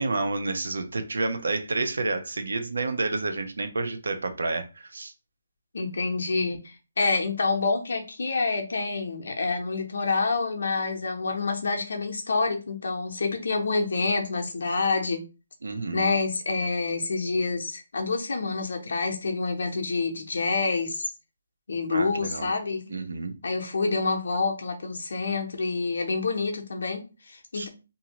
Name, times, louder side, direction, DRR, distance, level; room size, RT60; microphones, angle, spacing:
voice 1, 0.0-5.1 15.6-16.1 21.9-22.5 22.9-23.3 27.5-27.7, right 3 dB, 80° right, 0.6 m, -29 dB
voice 2, 5.7-15.2 15.9-21.1 21.7-23.0 23.4-27.7, left 3 dB, 70° left, 0.7 m, -27 dB
2.7 x 2.5 x 2.9 m
hypercardioid pair, 175°, 0 cm